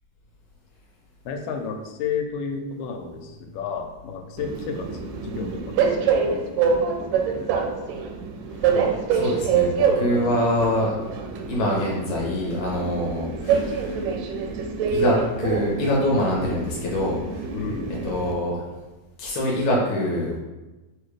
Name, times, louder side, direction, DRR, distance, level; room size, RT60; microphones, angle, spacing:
voice 1, 1.3-6.5 7.0-7.9 10.1-10.4 17.5-18.0, left 5 dB, 90° left, 4 dB, 2.2 m, -33 dB
Train, 4.4-18.3, right 6 dB, 85° right, 2.1 m, -26 dB
voice 2, 9.1-11.0 11.5-14.0 14.9-17.4 18.0-18.6 19.2-20.4, left 1 dB, 70° left, -3 dB, 1.9 m, -24 dB
6.3 x 2.4 x 3.2 m, 1.1 s
omnidirectional pair, 3.7 m